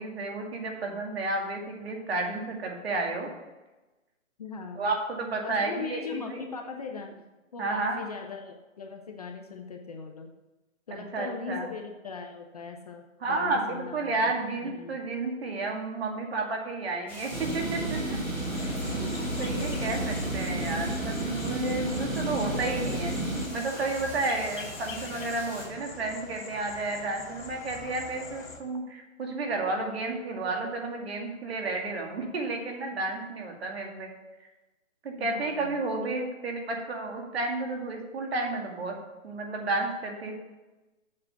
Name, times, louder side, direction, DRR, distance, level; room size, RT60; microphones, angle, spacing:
voice 1, 0.0-3.3 4.8-6.4 7.6-8.0 10.9-11.7 13.2-18.2 18.6-18.7 19.0-23.1 23.5-34.1 35.0-39.0 39.2-40.3, right 3 dB, 50° right, 2 dB, 2.2 m, -32 dB
voice 2, 4.4-4.9 5.4-7.1 7.5-10.3 10.9-14.2 14.6-15.0 18.8-19.0 19.6-20.0 35.2-36.3, left 5 dB, 30° left, 3 dB, 0.7 m, -40 dB
sound 1, 17.1-25.6, left 1 dB, 5° left, 3.2 m, -44 dB
sound 2, 17.3-23.5, right 1 dB, 90° right, 2.6 m, -31 dB
sound 3, 18.4-28.6, left 3 dB, 80° left, 2.1 m, -43 dB
7.6 x 6.0 x 6.6 m, 1.1 s
hypercardioid pair, 160°, 40 cm